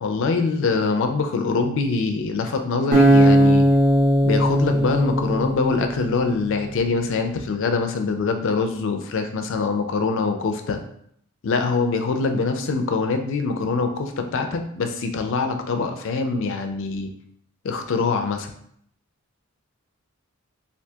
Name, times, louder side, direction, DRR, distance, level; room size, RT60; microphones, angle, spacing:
voice 1, 0.0-3.7 4.2-10.8 11.4-17.1 17.6-18.5, left 4 dB, 60° left, 6 dB, 0.4 m, -24 dB
Acoustic guitar, 2.9-6.1, equal, 45° right, 1.0 m, -17 dB
3.4 x 2.6 x 2.7 m, 0.68 s
head